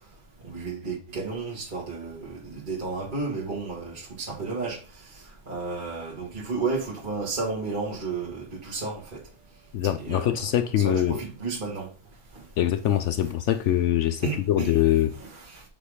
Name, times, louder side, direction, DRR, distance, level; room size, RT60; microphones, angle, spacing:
voice 1, 0.4-4.8 5.1-9.2 10.0-10.4 10.8-11.9 14.2-14.8 15.2-15.6, right 4 dB, 30° right, 1.8 m, -32 dB
voice 2, 9.7-11.2 12.6-15.1, left 11 dB, 85° left, 0.6 m, -23 dB
8.2 x 3.8 x 4.9 m
omnidirectional pair, 1.8 m